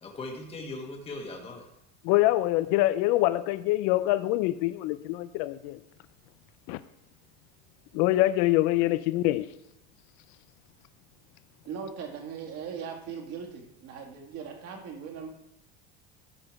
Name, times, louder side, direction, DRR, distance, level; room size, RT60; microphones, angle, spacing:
voice 1, 0.0-1.6, left 2 dB, 20° left, 2 dB, 1.3 m, -39 dB
voice 2, 2.0-5.8 6.7-6.8 7.9-9.5, left 16 dB, 70° left, 14 dB, 0.5 m, -25 dB
voice 3, 11.7-15.3, right 6 dB, 50° right, 2 dB, 2.1 m, -39 dB
12.0 x 5.0 x 4.7 m, 0.83 s
cardioid pair, 150°, 32 cm